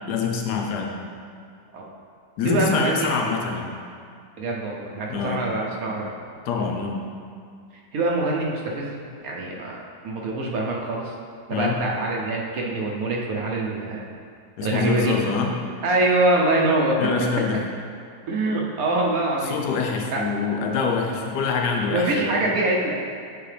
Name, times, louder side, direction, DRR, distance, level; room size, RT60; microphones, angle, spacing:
voice 1, 0.1-0.9 2.4-3.7 5.1-5.4 6.5-7.0 11.5-11.8 14.6-15.5 17.0-17.6 19.4-22.3, left 5 dB, 80° left, 2 dB, 1.3 m, -25 dB
voice 2, 2.4-3.1 4.4-6.1 7.9-8.9 9.2-11.1 11.5-14.1 14.6-15.3 15.8-17.0 18.3-19.6 20.1-20.2 21.9-22.9, right 2 dB, 65° right, -2 dB, 1.1 m, -24 dB
8.3 x 3.9 x 3.3 m, 2.3 s
omnidirectional pair, 1.7 m